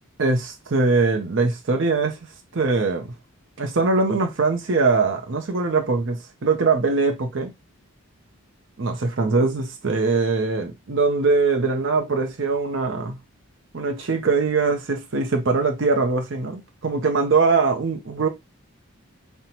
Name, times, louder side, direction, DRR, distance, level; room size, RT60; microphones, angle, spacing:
voice 1, 0.2-2.2 2.5-3.1 3.6-7.5 8.8-13.2 13.7-18.3, right 4 dB, 60° right, 0.7 m, -22 dB
5.4 x 2.2 x 2.9 m
head